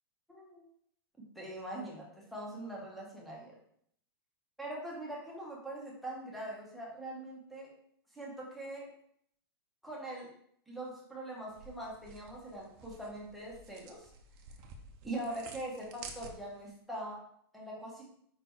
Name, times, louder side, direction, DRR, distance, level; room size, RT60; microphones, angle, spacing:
voice 1, 0.3-0.6 1.3-3.5 4.6-7.7 8.1-8.8 9.8-10.3 10.7-14.1 15.0-17.2 17.5-18.0, right 1 dB, ahead, -4 dB, 1.0 m, -42 dB
sound 1, 11.5-16.7, right 4 dB, 25° right, 0.7 m, -51 dB
5.1 x 4.3 x 4.5 m, 0.68 s
supercardioid pair, 175°, 13 cm